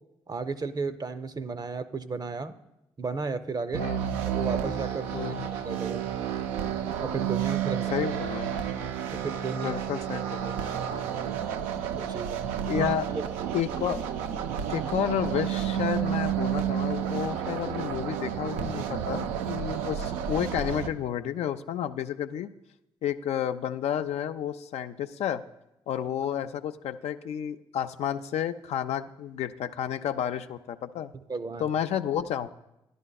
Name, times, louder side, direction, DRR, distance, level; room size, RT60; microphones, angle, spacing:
voice 1, 0.3-2.5 3.0-3.9 4.3-5.4 5.7-6.1 7.0-8.1 9.1-9.8 10.4-10.5 11.9-13.2 31.1-31.7, right 4 dB, 35° right, 11 dB, 0.6 m, -34 dB
sound 1, 3.7-20.9, right 9 dB, 90° right, 0.4 m, -31 dB
voice 2, 5.1-5.5 7.7-8.6 9.6-10.4 12.7-13.1 13.5-14.0 14.7-22.5 23.0-25.4 25.9-31.1 31.6-32.5, left 10 dB, 70° left, 9 dB, 0.4 m, -31 dB
11.0 x 11.0 x 2.3 m, 0.89 s
hypercardioid pair, 45°, 11 cm